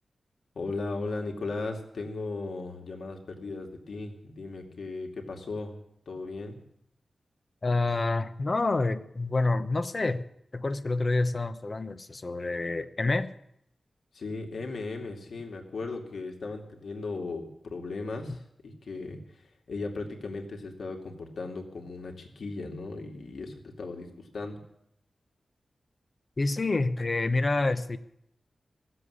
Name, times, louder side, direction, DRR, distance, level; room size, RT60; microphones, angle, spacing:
voice 1, 0.5-5.8 6.1-6.6 14.1-24.1 24.3-24.6, left 3 dB, 85° left, 2 dB, 2.5 m, -37 dB
voice 2, 7.6-10.2 10.5-13.3 26.4-28.0, left 3 dB, 40° left, 10 dB, 0.9 m, -27 dB
17.0 x 7.9 x 9.8 m, 0.74 s
wide cardioid pair, 110°, 0 cm